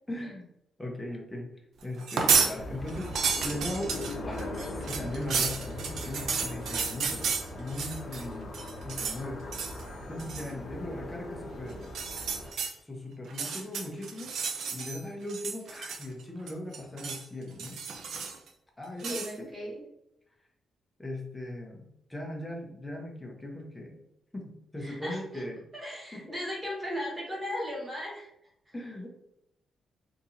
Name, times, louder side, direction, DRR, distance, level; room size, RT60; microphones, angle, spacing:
voice 1, 0.1-0.5 0.8-1.5 1.8-3.1 3.4-8.6 8.8-9.6 10.1-11.9 12.9-17.8 18.8-19.5 21.0-24.0 24.3-25.6 26.1-26.2 28.7-29.3, left 1 dB, 10° left, 0 dB, 0.7 m, -39 dB
sound 1, 2.0-2.5 2.9-8.2 8.5-9.2 9.5-9.8 10.2-10.5 11.8-12.7 13.3-15.0 15.3-16.2 16.5-17.2 17.6-18.5 19.0-19.3, right 5 dB, 75° right, 0.4 m, -31 dB
sound 2, 2.5-12.5, left 1 dB, 45° left, 0.7 m, -40 dB
voice 2, 19.0-19.8 24.8-25.4 25.7-28.3, left 1 dB, 15° right, -3 dB, 1.3 m, -36 dB
3.7 x 2.8 x 2.6 m, 0.81 s
cardioid pair, 140°, 0 cm